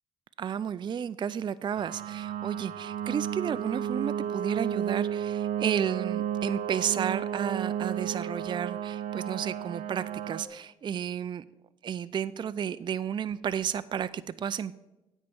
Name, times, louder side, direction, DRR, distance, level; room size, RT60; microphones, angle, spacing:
voice 1, 0.4-11.4 11.8-14.7, right 8 dB, 35° right, 14 dB, 0.4 m, -32 dB
sound 1, 1.8-10.5, right 9 dB, 70° right, 0.6 m, -32 dB
9.3 x 4.5 x 7.6 m, 0.99 s
supercardioid pair, 55°, 13 cm